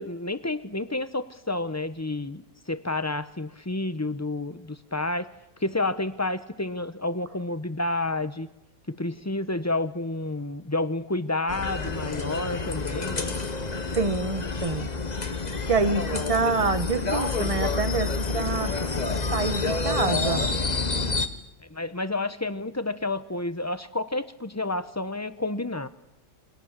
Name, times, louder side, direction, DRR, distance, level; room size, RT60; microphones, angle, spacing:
voice 1, 0.0-5.3 5.6-8.5 8.9-13.3 21.7-25.9, left 2 dB, 15° left, 12 dB, 0.9 m, -30 dB
sound 1, 11.5-21.3, left 3 dB, 30° left, 1.5 m, -28 dB
voice 2, 13.9-14.9 15.7-18.7 19.3-20.5, right 4 dB, 25° right, 12 dB, 1.2 m, -26 dB
28.0 x 24.0 x 7.6 m, 0.90 s
omnidirectional pair, 1.5 m